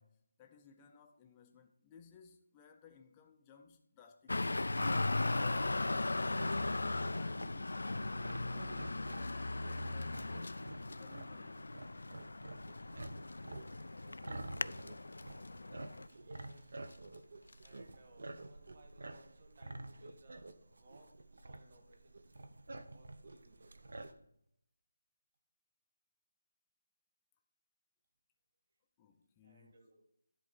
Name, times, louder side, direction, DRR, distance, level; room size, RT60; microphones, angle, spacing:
voice 1, 0.0-4.6 6.8-10.7 11.0-11.6 14.1-14.2 29.0-29.8, left 6 dB, 10° left, 0.5 m, -60 dB
Traffic noise roadway noise, 4.3-16.1, left 2 dB, 90° left, 0.3 m, -38 dB
sound 1, 4.7-24.1, right 2 dB, 65° right, 0.8 m, -50 dB
sound 2, 9.0-18.1, left 3 dB, 70° left, 0.9 m, -63 dB
voice 2, 16.1-17.0 17.6-23.9 29.4-30.1, right 2 dB, 35° right, 1.7 m, -64 dB
10.5 x 3.6 x 7.2 m
figure-of-eight pair, 175°, 0 cm